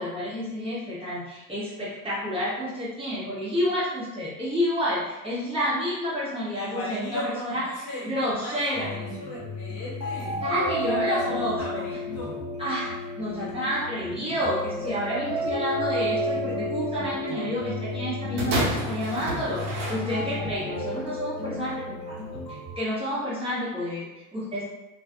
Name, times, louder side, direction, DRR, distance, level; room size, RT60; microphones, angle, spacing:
voice 1, 0.0-8.9 10.4-11.8 12.6-12.9 13.2-24.7, equal, 10° right, -10 dB, 1.0 m, -30 dB
voice 2, 6.5-10.4 10.8-12.5, equal, 50° left, -6 dB, 1.0 m, -37 dB
sound 1, 8.7-22.7, left 1 dB, 85° left, 0.8 m, -32 dB
sound 2, 18.4-20.6 21.4-21.5, right 1 dB, 50° right, 0.9 m, -30 dB
2.4 x 2.3 x 2.5 m, 1.0 s
figure-of-eight pair, 65°, 48 cm